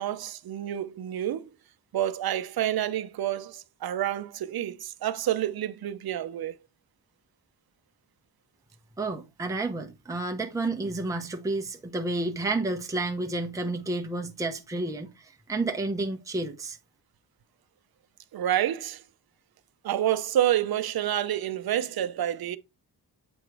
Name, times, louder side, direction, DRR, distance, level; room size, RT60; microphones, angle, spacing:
voice 1, 0.0-1.5 1.9-6.6 18.3-19.0 19.8-22.6, right 11 dB, 60° right, 0.7 m, -28 dB
voice 2, 9.0-16.8, right 2 dB, 10° right, 0.8 m, -30 dB
7.9 x 3.0 x 4.7 m
cardioid pair, 95°, 41 cm